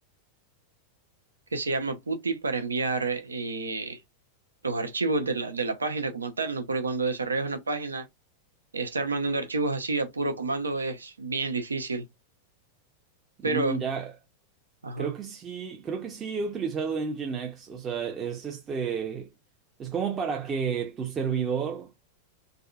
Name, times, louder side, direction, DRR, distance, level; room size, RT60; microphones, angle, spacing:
voice 1, 1.5-4.0 4.6-8.0 8.7-12.0 13.4-13.8 14.8-15.1, right 3 dB, 75° right, 0.6 m, -29 dB
voice 2, 13.4-14.1 15.0-19.3 19.8-21.9, right 6 dB, 25° right, 0.6 m, -31 dB
3.6 x 2.5 x 2.2 m
figure-of-eight pair, 90°, 0 cm